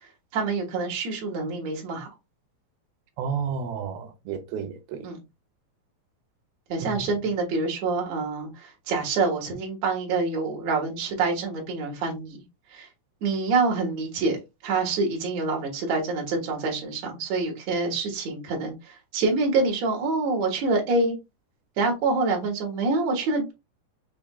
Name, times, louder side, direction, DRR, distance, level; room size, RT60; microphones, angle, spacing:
voice 1, 0.3-2.1 5.0-5.2 6.7-12.4 12.7-12.9 13.2-14.4 14.6-21.2 21.8-23.5, right 3 dB, 55° right, 2.5 m, -26 dB
voice 2, 3.2-5.1 6.8-7.1, right 6 dB, 90° right, 2.7 m, -32 dB
6.3 x 3.4 x 2.3 m
omnidirectional pair, 4.2 m